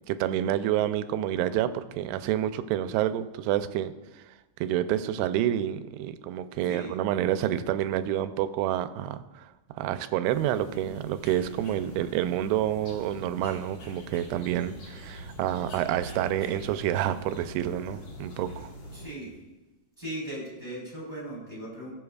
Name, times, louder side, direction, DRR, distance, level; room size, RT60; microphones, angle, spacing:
voice 1, 0.1-4.2 4.6-18.7, right 12 dB, 90° right, 11 dB, 2.6 m, -28 dB
voice 2, 6.6-7.0 18.9-19.3 20.0-21.9, right 1 dB, 5° left, -5 dB, 3.2 m, -38 dB
sound 1, 10.2-19.1, equal, 50° left, 2.0 m, -43 dB
18.0 x 7.6 x 2.4 m, 1.1 s
omnidirectional pair, 4.6 m